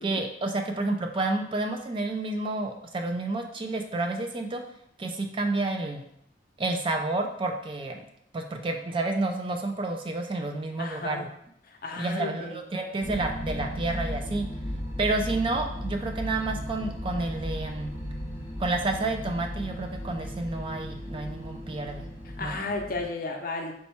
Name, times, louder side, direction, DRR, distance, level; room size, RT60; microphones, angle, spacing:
voice 1, 0.0-4.6 5.0-6.0 6.6-8.0 8.3-11.3 12.0-14.5 15.0-17.9 18.6-22.1 22.4-22.6, right 2 dB, 30° right, 4 dB, 0.4 m, -30 dB
voice 2, 10.8-11.3 11.6-12.6 22.2-23.7, left 3 dB, 50° left, 2 dB, 0.6 m, -34 dB
sound 1, 13.0-23.0, equal, 20° left, 1.0 m, -36 dB
4.2 x 2.3 x 4.2 m, 0.70 s
head